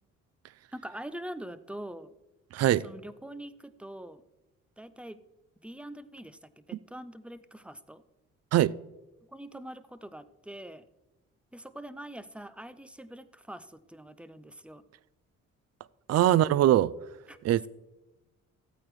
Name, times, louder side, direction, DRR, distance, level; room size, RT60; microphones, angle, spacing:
voice 1, 0.7-2.1 2.8-4.2 4.8-5.2 5.6-8.0 9.3-10.9 11.5-14.8 17.3-17.4, right 1 dB, 5° right, 0.5 m, -44 dB
voice 2, 2.5-2.8 8.5-8.7 16.1-16.9 17.4-17.7, right 13 dB, 55° right, 0.4 m, -22 dB
14.5 x 8.7 x 3.1 m
cardioid pair, 90°, 30 cm